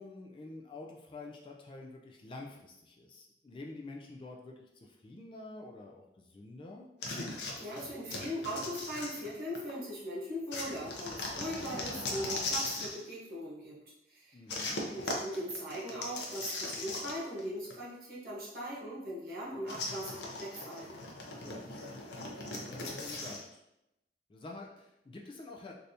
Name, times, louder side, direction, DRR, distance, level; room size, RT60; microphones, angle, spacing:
voice 1, 0.0-6.9 14.3-14.8 21.4-21.9 22.5-23.6 24.3-25.7, left 2 dB, 30° left, 0 dB, 0.3 m, -48 dB
sound 1, 7.0-9.7 10.5-13.0 14.5-17.4 17.7-17.8 19.7-23.4, left 2 dB, 85° left, 0.6 m, -39 dB
voice 2, 7.4-13.8 14.1-14.4 14.9-21.0, equal, 55° right, -6 dB, 1.2 m, -40 dB
3.3 x 2.6 x 2.7 m, 0.86 s
head